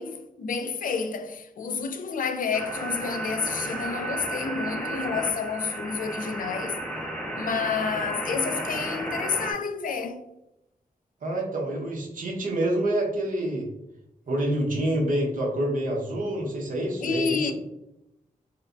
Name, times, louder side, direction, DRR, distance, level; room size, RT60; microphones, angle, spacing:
voice 1, 0.0-6.8 7.3-10.2 17.0-17.5, left 5 dB, 70° left, 0.4 m, -29 dB
sound 1, 2.5-9.5, right 1 dB, 5° left, 0.5 m, -33 dB
voice 2, 11.2-13.7 14.3-17.5, right 1 dB, 70° right, 1.0 m, -27 dB
4.3 x 2.1 x 2.5 m
wide cardioid pair, 160°, 15 cm